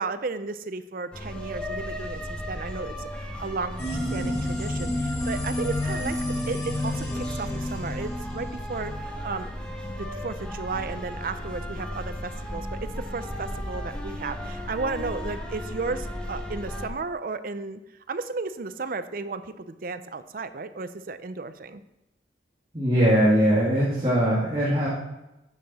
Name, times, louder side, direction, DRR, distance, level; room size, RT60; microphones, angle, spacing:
voice 1, 0.0-6.2 6.5-9.5 10.0-17.8 18.1-21.8, right 4 dB, 50° right, 11 dB, 0.5 m, -34 dB
sound 1, 1.1-16.9, equal, 5° left, 1.1 m, -35 dB
sound 2, 3.8-9.0, left 1 dB, 35° left, 2.0 m, -30 dB
voice 2, 22.7-24.9, equal, 30° right, -8 dB, 2.0 m, -21 dB
9.9 x 6.7 x 4.1 m, 0.95 s
head